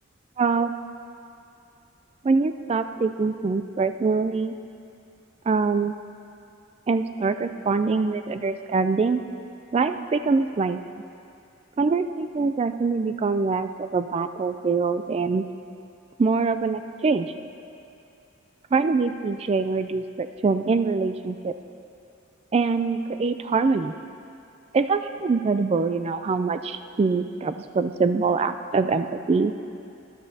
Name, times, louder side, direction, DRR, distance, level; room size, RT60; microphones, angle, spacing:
voice 1, 0.4-0.7 2.2-4.6 5.5-5.9 6.9-9.2 9.7-10.8 11.8-15.4 16.2-17.3 18.7-21.5 22.5-23.9 24.7-29.5, right 4 dB, 30° right, 10 dB, 0.3 m, -24 dB
12.0 x 12.0 x 2.8 m, 2.7 s
head